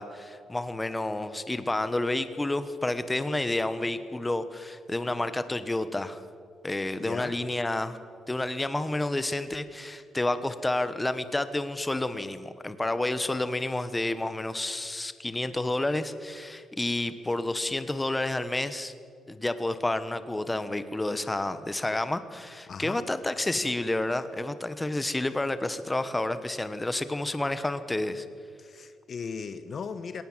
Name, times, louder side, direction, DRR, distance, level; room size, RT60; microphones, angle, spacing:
voice 1, 0.0-6.2 6.6-8.0 8.3-18.9 19.3-28.2, left 2 dB, 15° left, 12 dB, 1.2 m, -30 dB
voice 2, 7.0-7.4 22.7-23.0 28.6-30.2, left 5 dB, 50° left, 12 dB, 1.0 m, -37 dB
20.5 x 18.0 x 7.5 m, 2.2 s
cardioid pair, 90°, 0 cm